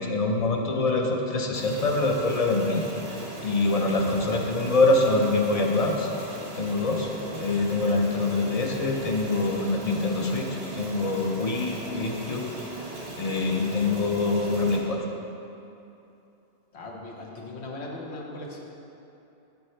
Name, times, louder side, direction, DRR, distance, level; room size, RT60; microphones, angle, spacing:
voice 1, 0.0-2.8 3.4-6.1 6.6-7.1 7.3-10.5 10.8-12.5 13.2-15.0, left 2 dB, 40° left, 2 dB, 0.7 m, -24 dB
sound 1, 1.5-14.8, right 2 dB, 85° right, 1.7 m, -38 dB
voice 2, 16.7-18.6, left 2 dB, 85° left, -2 dB, 1.3 m, -38 dB
8.3 x 7.1 x 3.2 m, 2.8 s
omnidirectional pair, 1.1 m